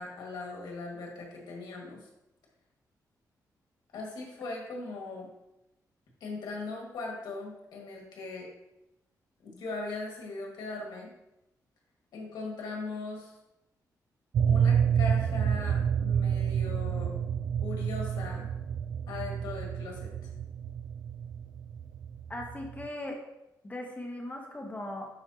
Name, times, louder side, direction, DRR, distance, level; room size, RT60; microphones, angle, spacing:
voice 1, 0.0-2.1 3.9-5.3 6.2-8.5 9.4-11.1 12.1-13.3 14.5-17.1 17.6-18.5 19.1-20.1, left 3 dB, 90° left, -1 dB, 1.8 m, -39 dB
sound 1, 14.3-22.9, right 8 dB, 70° right, 0.4 m, -29 dB
voice 2, 22.3-23.2 23.6-25.1, left 1 dB, 25° left, 0 dB, 1.6 m, -38 dB
10.5 x 4.6 x 2.8 m, 0.90 s
cardioid pair, 85°, 7 cm